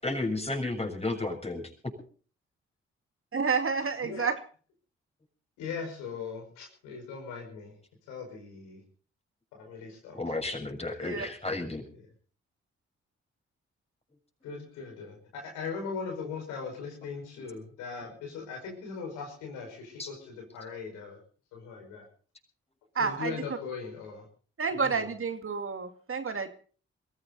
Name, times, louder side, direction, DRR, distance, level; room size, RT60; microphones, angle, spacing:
voice 1, 0.0-1.9 10.1-11.8 20.0-20.1, left 2 dB, 20° left, 4 dB, 6.9 m, -32 dB
voice 2, 3.3-4.4 11.0-11.3 23.0-23.3 24.6-26.5, right 5 dB, 45° right, 7 dB, 2.4 m, -29 dB
voice 3, 5.6-7.8 8.1-8.8 9.5-10.2 11.9-12.0 14.4-21.2 21.5-22.0 23.0-24.3 24.7-25.1, left 5 dB, 90° left, 2 dB, 5.4 m, -39 dB
22.5 x 15.0 x 4.1 m, 0.41 s
hypercardioid pair, 40°, 29 cm